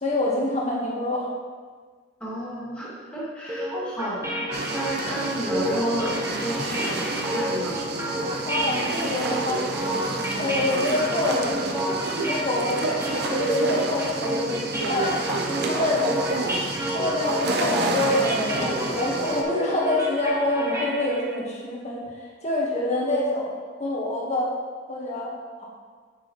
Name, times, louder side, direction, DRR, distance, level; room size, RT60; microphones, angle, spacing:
voice 1, 0.0-1.3 8.5-9.6 10.4-11.6 12.2-13.0 13.3-15.2 15.6-16.1 16.9-22.0 22.4-23.5 23.8-24.5 24.9-25.3 25.6-25.7, left 2 dB, 35° left, -4 dB, 1.7 m, -26 dB
voice 2, 2.2-7.8, equal, 5° left, -8 dB, 2.3 m, -31 dB
sound 1, 3.5-21.3, right 1 dB, 15° right, 1.0 m, -30 dB
sound 2, 4.5-19.4, right 3 dB, 55° right, 0.7 m, -29 dB
8.2 x 6.8 x 3.3 m, 1.5 s
head